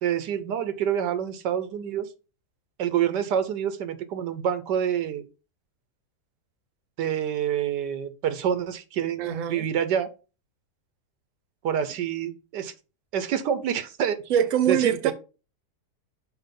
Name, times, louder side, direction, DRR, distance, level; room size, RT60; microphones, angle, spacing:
voice 1, 0.0-2.1 2.8-5.3 7.0-10.1 11.6-12.7 13.1-14.2 14.7-15.1, right 9 dB, 85° right, 1.5 m, -27 dB
voice 2, 9.2-9.7 14.3-15.1, right 9 dB, 55° right, 1.2 m, -24 dB
6.0 x 4.9 x 5.3 m
omnidirectional pair, 1.8 m